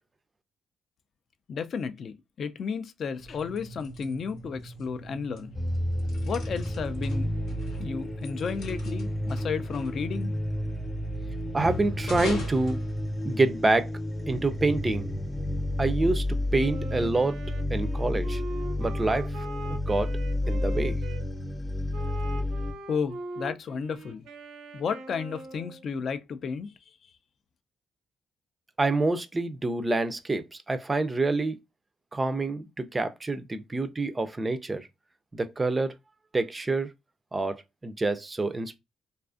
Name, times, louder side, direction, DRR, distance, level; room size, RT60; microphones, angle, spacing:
voice 1, 1.5-5.5 6.2-7.3 7.8-10.3 22.9-24.2 24.7-26.9, left 6 dB, 55° left, 0.3 m, -33 dB
sound 1, 3.1-13.6, left 1 dB, 85° left, 0.9 m, -40 dB
sound 2, 5.5-22.7, left 1 dB, 25° left, 0.7 m, -31 dB
voice 2, 11.5-12.8 13.2-13.9 14.3-15.1 15.8-16.2 16.5-17.4 17.7-18.4 18.8-19.3 19.7-20.1 20.5-21.0 28.8-31.6 32.1-34.9 35.3-35.9 36.3-36.9 37.3-38.8, right 2 dB, 25° right, 0.3 m, -27 dB
Wind instrument woodwind instrument, 16.6-21.3 21.9-25.8, right 2 dB, 85° right, 0.5 m, -41 dB
2.4 x 2.4 x 2.4 m
cardioid pair, 90°, 0 cm